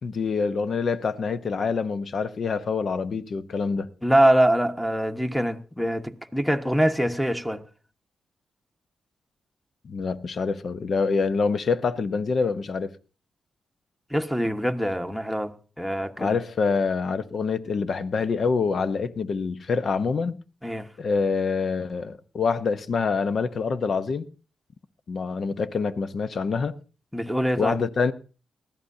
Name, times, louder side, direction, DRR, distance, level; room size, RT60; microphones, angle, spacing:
voice 1, 0.0-3.9 9.8-12.9 16.2-20.4 21.0-24.2 25.1-26.7 27.6-28.1, left 5 dB, 60° left, 0.9 m, -26 dB
voice 2, 4.0-7.6 14.1-16.4 20.6-20.9 27.1-27.7, right 1 dB, ahead, 1.3 m, -24 dB
20.0 x 13.5 x 2.8 m
supercardioid pair, 55°, 0 cm